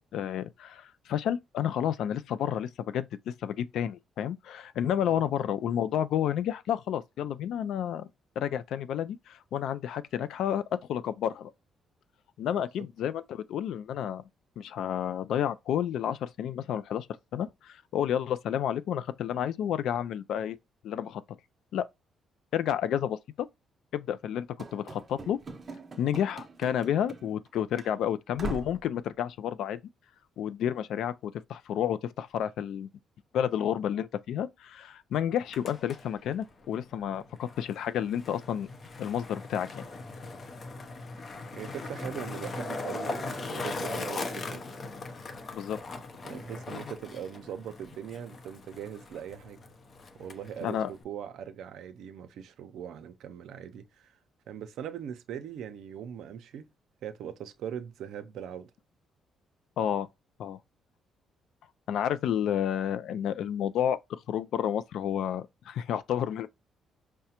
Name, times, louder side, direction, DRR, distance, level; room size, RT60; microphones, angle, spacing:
voice 1, 0.1-8.1 8.4-11.5 12.4-14.2 14.6-17.1 17.3-20.6 20.8-21.2 21.7-21.9 22.5-23.5 23.9-25.4 26.0-29.8 30.4-32.9 33.3-38.7 39.0-39.9 45.5-45.8 50.6-50.9 59.8-60.1 60.4-60.6 61.9-66.5, left 9 dB, 80° left, 0.3 m, -30 dB
Run / Slam, 24.6-27.5 27.7-27.9 28.4-28.9, right 3 dB, 40° right, 0.6 m, -41 dB
Skateboard, 35.3-51.0, left 3 dB, 45° left, 0.6 m, -40 dB
voice 2, 41.5-44.6 46.2-49.6 50.2-54.2 54.5-56.7 57.0-58.7, right 9 dB, 80° right, 0.5 m, -41 dB
4.8 x 2.1 x 2.8 m
cardioid pair, 90°, 0 cm